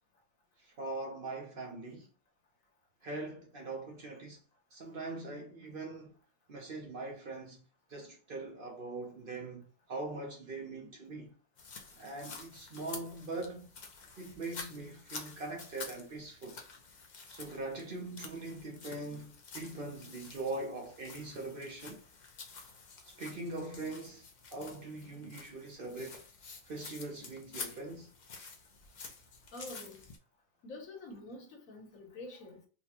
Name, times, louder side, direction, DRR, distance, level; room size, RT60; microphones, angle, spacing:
voice 1, 0.6-2.1 3.0-4.4 4.7-6.2 6.5-7.6 7.9-11.4 12.0-13.7 14.2-16.6 17.3-22.0 23.0-24.3 24.5-26.2 26.7-28.1, right 2 dB, 50° right, 0.8 m, -42 dB
sound 1, 11.6-30.2, left 4 dB, 50° left, 0.5 m, -49 dB
voice 2, 29.5-30.0 30.6-32.7, left 2 dB, 85° left, 1.4 m, -47 dB
4.0 x 2.2 x 2.8 m
omnidirectional pair, 1.4 m